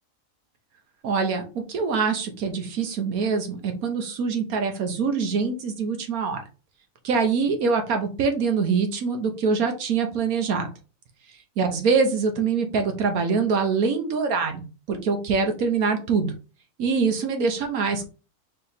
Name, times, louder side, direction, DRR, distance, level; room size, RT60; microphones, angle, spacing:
voice 1, 1.0-6.4 7.0-10.7 11.6-16.3 16.8-18.1, right 5 dB, 85° right, 5 dB, 1.3 m, -24 dB
3.8 x 3.3 x 4.1 m, 0.33 s
omnidirectional pair, 1.5 m